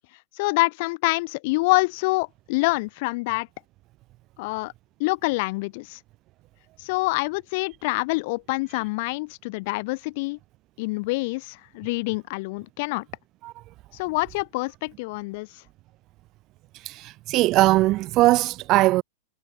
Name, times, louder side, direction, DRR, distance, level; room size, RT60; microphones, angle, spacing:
voice 1, 0.4-3.5 4.4-4.7 5.0-6.0 6.8-10.4 10.8-13.0 13.9-15.6, left 25 dB, 55° left, 4.3 m, -26 dB
voice 2, 16.7-19.0, right 18 dB, 40° right, 2.2 m, -20 dB
hypercardioid pair, 110°, 0 cm